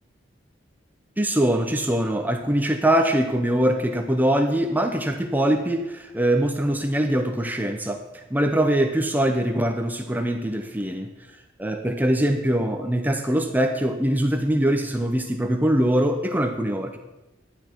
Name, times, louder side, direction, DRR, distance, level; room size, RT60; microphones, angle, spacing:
voice 1, 1.2-8.0 8.3-11.1 11.6-17.0, right 1 dB, 10° right, 5 dB, 0.7 m, -22 dB
12.0 x 10.0 x 4.5 m, 1.0 s
head